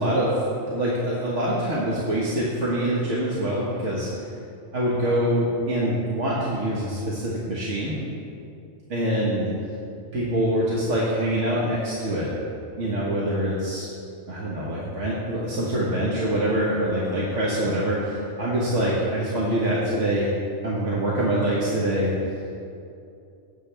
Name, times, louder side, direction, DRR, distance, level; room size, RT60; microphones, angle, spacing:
voice 1, 0.0-4.2 4.7-8.0 8.9-9.5 10.1-12.3 12.8-13.9 14.3-20.3 20.6-22.1, right 1 dB, 60° right, -6 dB, 1.8 m, -25 dB
16.0 x 9.1 x 3.4 m, 2.5 s
omnidirectional pair, 1.4 m